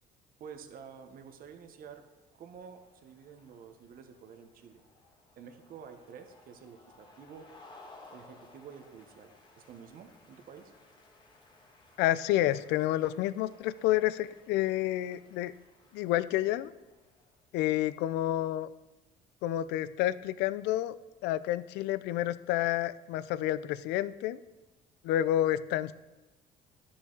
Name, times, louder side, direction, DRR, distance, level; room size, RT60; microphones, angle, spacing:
voice 1, 0.4-2.0 2.3-4.8 5.4-7.5 8.1-10.7, right 7 dB, 60° right, 6 dB, 1.0 m, -50 dB
sound 1, 2.1-17.7, left 2 dB, 25° left, 1.6 m, -59 dB
voice 2, 12.0-15.5 15.9-16.7 17.5-18.7 19.4-20.9 21.2-24.4 25.0-25.9, left 13 dB, 90° left, 16 dB, 0.4 m, -29 dB
11.5 x 6.3 x 3.8 m, 1.1 s
cardioid pair, 110°, 17 cm